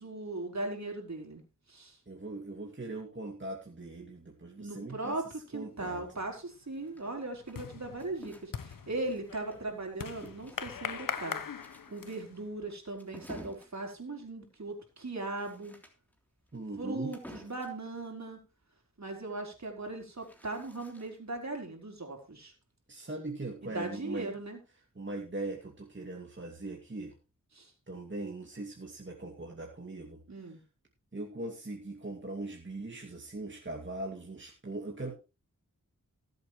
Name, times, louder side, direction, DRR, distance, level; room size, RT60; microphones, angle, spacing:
voice 1, 0.0-1.4 1.7-2.0 4.6-5.2 5.5-11.4 11.9-15.7 16.8-18.4 19.0-22.5 23.6-24.6 27.5-27.7 30.3-30.6, right 2 dB, 55° right, 2 dB, 4.2 m, -38 dB
voice 2, 2.1-5.2 5.5-6.0 16.5-17.2 22.9-24.3 25.0-27.2 27.9-30.2 31.1-35.1, right 2 dB, 35° right, 0 dB, 2.4 m, -40 dB
sound 1, 5.9-6.3 6.6-12.4, left 7 dB, 80° left, 1.0 m, -41 dB
sound 2, 6.7-9.8 10.2-17.9 19.7-21.4, equal, 5° left, 3.4 m, -53 dB
19.0 x 7.9 x 3.2 m, 0.29 s
cardioid pair, 50°, 33 cm